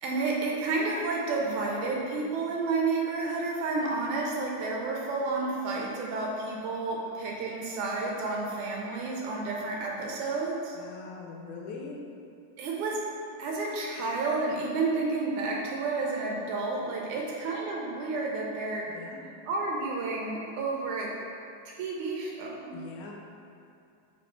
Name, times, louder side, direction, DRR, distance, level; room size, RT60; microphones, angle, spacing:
voice 1, 0.0-10.8 12.6-13.0 13.4-18.9 19.5-21.1 21.7-22.8, right 3 dB, 85° right, -2 dB, 2.1 m, -31 dB
voice 2, 10.7-12.0 17.1-17.3 18.9-19.3 22.7-23.1, left 4 dB, 90° left, -1 dB, 2.2 m, -43 dB
6.8 x 3.2 x 4.3 m, 2.5 s
omnidirectional pair, 3.4 m